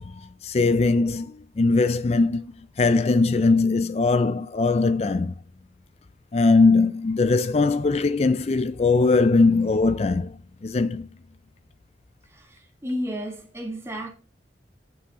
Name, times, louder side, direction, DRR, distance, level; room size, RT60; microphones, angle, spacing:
voice 1, 0.0-5.3 6.3-11.1, left 3 dB, 35° left, 0.4 m, -21 dB
voice 2, 12.2-14.1, equal, 15° right, 2.0 m, -32 dB
9.2 x 6.9 x 3.6 m
head